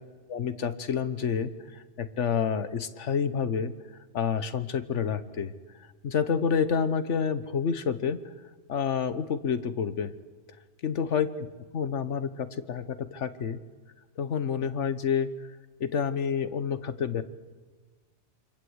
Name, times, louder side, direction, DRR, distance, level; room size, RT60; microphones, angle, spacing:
voice 1, 0.3-3.7 4.1-5.5 5.8-8.2 8.7-10.1 10.8-11.5 11.7-13.6 14.2-15.5 15.8-17.2, left 7 dB, 80° left, 12 dB, 1.4 m, -29 dB
28.0 x 25.0 x 8.0 m, 1.4 s
omnidirectional pair, 1.2 m